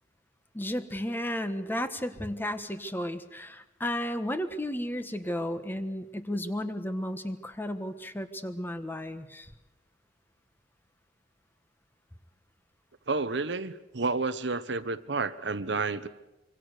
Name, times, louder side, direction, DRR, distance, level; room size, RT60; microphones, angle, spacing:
voice 1, 0.5-9.5, equal, 10° left, 9 dB, 1.4 m, -33 dB
voice 2, 13.1-16.1, right 3 dB, 70° right, 12 dB, 1.1 m, -30 dB
25.5 x 24.0 x 6.7 m, 0.97 s
head